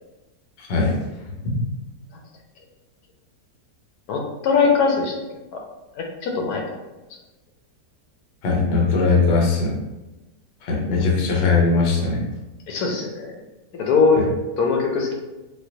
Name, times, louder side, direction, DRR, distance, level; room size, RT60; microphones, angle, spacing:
voice 1, 0.6-1.0 1.4-1.6 8.4-9.8 10.6-12.2, left 4 dB, 55° left, -1 dB, 0.7 m, -20 dB
voice 2, 4.1-5.2 5.5-5.6 6.0-6.6 12.7-13.3 13.7-14.2 14.6-15.1, left 5 dB, 75° left, 1 dB, 1.1 m, -21 dB
4.2 x 2.2 x 2.6 m, 1.1 s
omnidirectional pair, 1.7 m